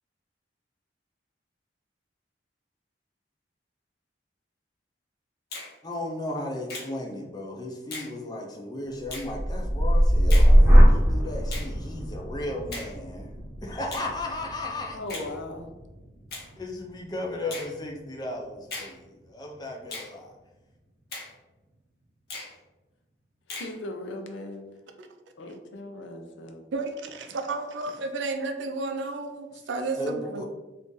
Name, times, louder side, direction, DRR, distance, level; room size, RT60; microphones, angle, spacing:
Finger snapping, 5.5-5.7 6.7-6.9 7.9-8.1 9.1-9.3 10.3-10.5 11.5-11.7 12.7-12.9 13.9-14.1 15.1-15.3 16.3-16.5 17.5-17.7 18.7-18.9 19.9-20.1 21.1-21.3 22.3-22.5 23.5-23.7, left 3 dB, 55° left, 0.8 m, -38 dB
voice 1, 5.8-13.3 13.6-15.0 16.6-20.3 30.0-30.5, left 1 dB, 20° left, 0 dB, 0.4 m, -35 dB
sound 1, 9.0-17.1 17.5-18.0, equal, 15° right, 0.8 m, -21 dB
voice 2, 14.9-15.7 23.5-24.6 25.4-26.6, left 1 dB, 85° left, 4 dB, 0.5 m, -38 dB
voice 3, 26.7-30.5, right 3 dB, 85° right, 5 dB, 0.4 m, -32 dB
2.5 x 2.5 x 3.7 m, 1.1 s
head